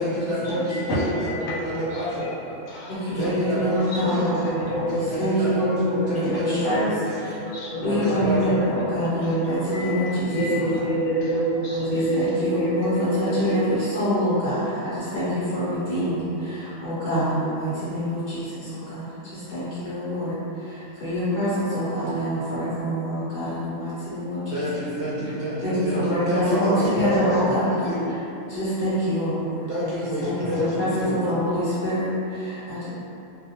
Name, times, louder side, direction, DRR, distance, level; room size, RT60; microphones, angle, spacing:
voice 1, 0.0-2.3 3.2-4.4 5.1-5.8 6.1-7.1 7.9-8.6 24.5-27.5 27.8-28.1 29.7-31.2, equal, 55° right, -10 dB, 0.5 m, -28 dB
voice 2, 0.7-2.1 2.7-3.7 4.0-4.3 4.7-5.1 6.2-6.7 7.3-8.7 9.0-13.6, right 1 dB, 85° left, -7 dB, 1.0 m, -27 dB
voice 3, 2.9-6.9 7.2-7.3 7.8-10.6 11.7-24.6 25.1-25.3 25.6-27.9 28.5-29.7 30.2-32.9, equal, 55° left, -13 dB, 0.9 m, -26 dB
2.3 x 2.1 x 2.8 m, 2.9 s
omnidirectional pair, 1.3 m